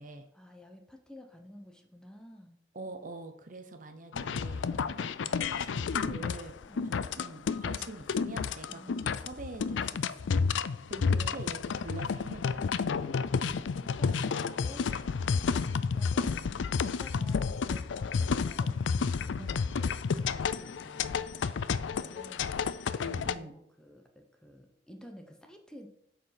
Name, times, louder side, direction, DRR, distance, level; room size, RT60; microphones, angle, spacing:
voice 1, 0.3-2.6 4.7-5.1 6.7-7.1 8.7-9.0 11.1-11.7 12.9-16.7 17.0-22.5 22.9-25.9, equal, 5° left, 3 dB, 1.0 m, -52 dB
voice 2, 2.7-6.6 6.9-10.3 10.9-12.7 16.2-16.5 17.2-17.4 19.4-19.6 23.0-23.5, right 2 dB, 45° right, 7 dB, 0.9 m, -45 dB
sound 1, 4.1-23.3, left 5 dB, 85° left, 0.4 m, -31 dB
8.0 x 4.8 x 5.8 m, 0.74 s
head